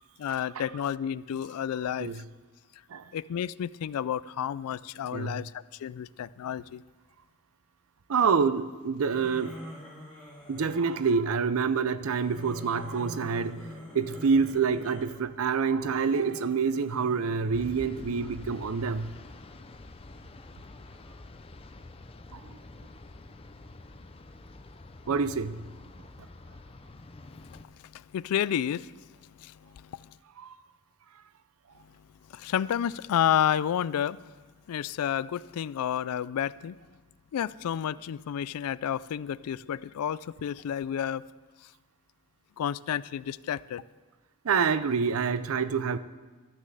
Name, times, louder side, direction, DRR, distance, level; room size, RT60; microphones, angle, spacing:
voice 1, 0.2-2.2 3.1-6.8 27.4-30.1 32.3-34.2 34.7-36.8 37.3-41.3 42.6-43.8, left 9 dB, 80° left, 19 dB, 0.3 m, -31 dB
voice 2, 5.1-5.4 8.1-9.6 10.5-13.6 13.9-19.1 22.3-22.6 25.1-25.6 30.4-30.6 44.4-46.0, right 5 dB, 70° right, 15 dB, 0.5 m, -27 dB
sound 1, 9.1-11.1 12.0-15.1 15.8-19.3, equal, 5° left, 2.4 m, -47 dB
sound 2, 17.5-27.6, left 2 dB, 25° left, 0.5 m, -47 dB
12.0 x 6.4 x 7.7 m, 1.4 s
head